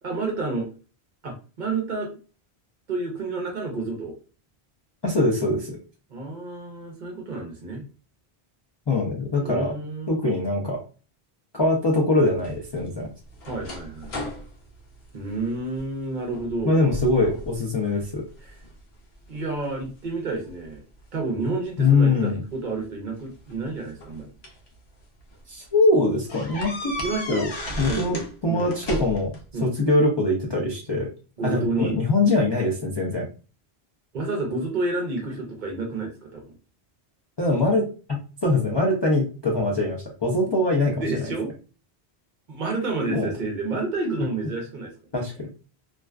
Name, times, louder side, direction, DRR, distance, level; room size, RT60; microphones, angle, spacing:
voice 1, 0.0-0.7 1.2-2.1 2.9-4.1 6.1-7.8 9.4-10.1 13.4-14.3 15.1-16.8 18.4-18.6 19.3-20.8 21.1-24.3 27.0-27.5 27.8-28.7 29.5-29.7 31.4-32.0 34.1-36.5 40.9-41.5 42.5-44.9, right 3 dB, 55° right, 1 dB, 0.7 m, -30 dB
voice 2, 5.0-5.8 8.9-9.7 10.1-10.8 11.5-13.1 16.6-18.2 21.8-22.4 25.5-26.9 27.3-27.5 27.8-31.1 31.4-33.3 37.4-41.0 43.1-43.3 45.1-45.5, left 2 dB, 45° left, -3 dB, 0.3 m, -23 dB
sound 1, 12.4-15.8 16.3-16.6 16.9-17.6 18.0-18.7 19.3-20.8 21.9-22.1 23.3-24.7 25.2-25.4 25.7-25.8 26.3-28.3 28.6-29.4, left 1 dB, 75° left, 0.9 m, -35 dB
2.4 x 2.2 x 2.2 m, 0.36 s
omnidirectional pair, 1.1 m